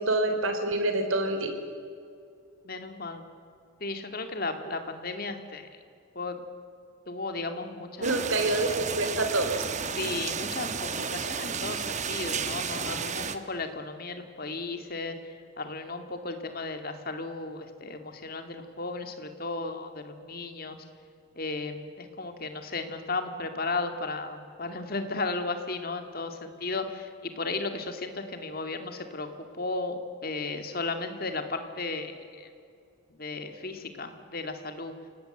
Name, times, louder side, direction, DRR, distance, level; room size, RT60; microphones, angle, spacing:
voice 1, 0.0-1.5 8.0-9.6, right 2 dB, 65° right, 6 dB, 3.4 m, -27 dB
voice 2, 2.6-3.2 3.8-5.8 6.2-6.4 7.1-8.1 8.4-8.5 10.0-20.8 21.4-32.5 33.2-34.9, left 3 dB, 45° left, 7 dB, 2.2 m, -35 dB
sound 1, 8.0-13.4, right 6 dB, 35° right, 1.1 m, -32 dB
28.0 x 18.5 x 7.9 m, 2.4 s
head